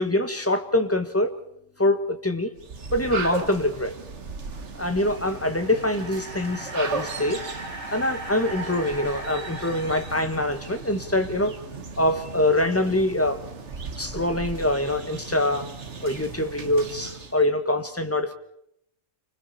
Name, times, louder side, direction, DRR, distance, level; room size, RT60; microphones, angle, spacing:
voice 1, 0.0-1.4 1.8-2.5 2.9-3.9 4.7-7.5 7.9-11.6 12.0-13.4 14.0-15.7 16.0-18.3, left 1 dB, 10° left, 1.4 m, -24 dB
sound 1, 2.6-17.5, right 4 dB, 65° right, 1.8 m, -37 dB
sound 2, 4.8-11.1, right 2 dB, 85° right, 6.2 m, -39 dB
28.5 x 25.5 x 4.3 m
omnidirectional pair, 1.3 m